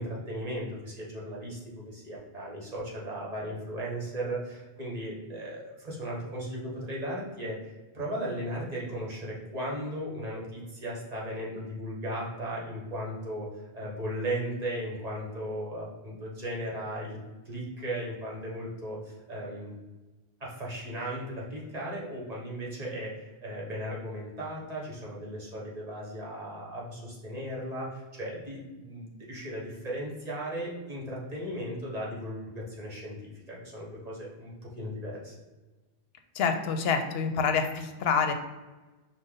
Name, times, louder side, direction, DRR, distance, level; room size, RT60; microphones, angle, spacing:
voice 1, 0.0-17.2 17.4-19.7 20.4-35.3, right 1 dB, 40° right, -4 dB, 1.2 m, -36 dB
voice 2, 36.3-38.3, left 6 dB, 75° left, 6 dB, 0.8 m, -27 dB
5.2 x 2.2 x 3.8 m, 1.2 s
omnidirectional pair, 1.1 m